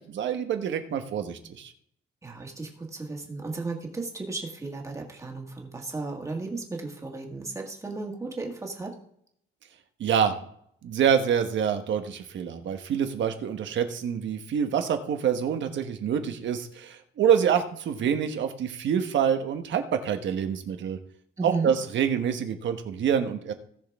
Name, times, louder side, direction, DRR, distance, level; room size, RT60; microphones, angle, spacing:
voice 1, 0.1-1.7 10.0-10.4 10.8-21.0 21.4-23.5, right 8 dB, 65° right, 6 dB, 1.3 m, -26 dB
voice 2, 2.2-9.0 21.4-21.7, right 3 dB, 15° right, 1 dB, 1.8 m, -34 dB
18.0 x 6.4 x 3.5 m, 0.69 s
cardioid pair, 170°, 20 cm